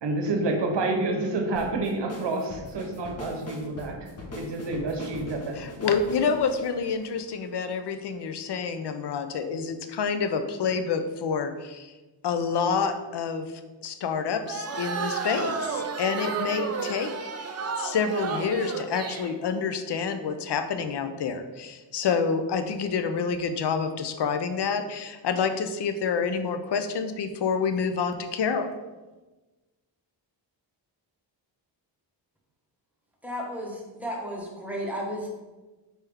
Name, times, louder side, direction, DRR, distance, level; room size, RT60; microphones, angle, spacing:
voice 1, 0.0-4.1 4.3-5.6, right 2 dB, 60° right, 3 dB, 0.8 m, -28 dB
sound 1, 1.5-7.8, left 2 dB, 30° left, 0.9 m, -41 dB
voice 2, 5.6-11.9 12.2-13.5 13.8-17.4 17.8-28.7, left 5 dB, 60° left, 9 dB, 0.5 m, -28 dB
sound 2, 14.5-19.3, right 4 dB, 35° right, 0.4 m, -32 dB
voice 3, 33.2-35.3, equal, 5° right, -3 dB, 1.0 m, -33 dB
4.4 x 3.4 x 3.4 m, 1.2 s
wide cardioid pair, 85°, 47 cm